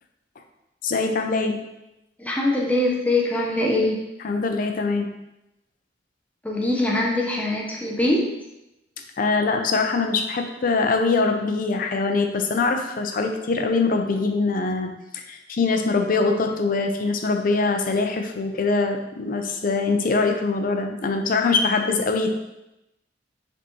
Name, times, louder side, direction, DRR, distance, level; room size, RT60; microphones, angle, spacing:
voice 1, 0.8-1.6 4.2-5.1 9.2-22.3, left 3 dB, 50° left, 5 dB, 0.5 m, -23 dB
voice 2, 2.2-4.0 6.4-8.3, left 1 dB, 10° left, -2 dB, 0.6 m, -22 dB
4.9 x 3.5 x 3.1 m, 0.92 s
head